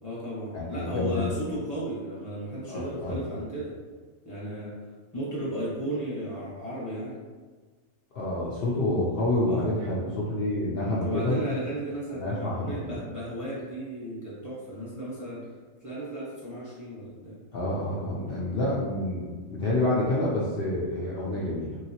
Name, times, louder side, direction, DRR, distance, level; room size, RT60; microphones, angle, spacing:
voice 1, 0.0-3.7 4.2-4.7 5.1-7.2 9.5-9.7 10.7-15.4 15.8-17.4 21.2-21.6, right 1 dB, 15° right, -8 dB, 0.8 m, -35 dB
voice 2, 0.5-1.4 2.7-3.3 8.1-11.4 12.1-13.0 17.5-21.8, left 1 dB, 55° left, -7 dB, 0.7 m, -28 dB
3.3 x 2.9 x 2.8 m, 1.4 s
omnidirectional pair, 1.4 m